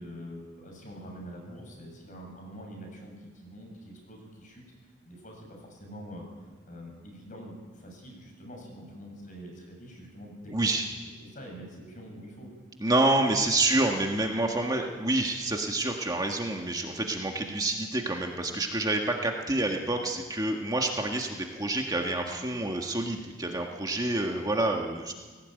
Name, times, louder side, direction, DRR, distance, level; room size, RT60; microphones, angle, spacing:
voice 1, 0.0-4.6 5.1-6.3 6.7-10.4 11.3-12.5, equal, 45° left, 1 dB, 7.3 m, -45 dB
voice 2, 10.5-10.9 12.8-25.1, right 2 dB, 20° right, 2 dB, 1.6 m, -28 dB
19.5 x 18.0 x 9.2 m, 1.4 s
head